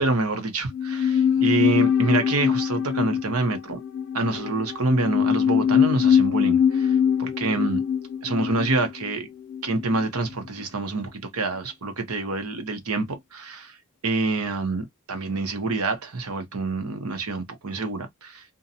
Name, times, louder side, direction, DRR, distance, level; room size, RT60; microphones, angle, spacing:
voice 1, 0.0-3.8 4.1-7.8 8.2-9.3 9.6-13.8 14.0-18.4, right 3 dB, 85° right, 0.9 m, -27 dB
sound 1, 0.7-10.0 10.3-10.4, left 8 dB, 60° left, 0.5 m, -23 dB
2.6 x 2.2 x 2.6 m
head